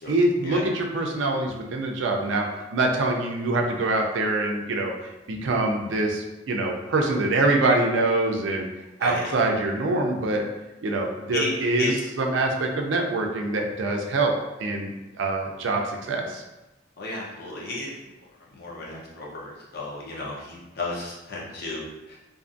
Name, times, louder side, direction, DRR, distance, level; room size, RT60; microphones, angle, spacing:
voice 1, 0.1-4.9 5.3-8.7 9.0-10.4 10.8-14.3 14.6-16.4, right 2 dB, 90° right, 2 dB, 0.4 m, -24 dB
voice 2, 17.0-17.9 18.5-22.2, left 2 dB, 55° left, -4 dB, 0.7 m, -33 dB
2.6 x 2.4 x 2.5 m, 1.0 s
head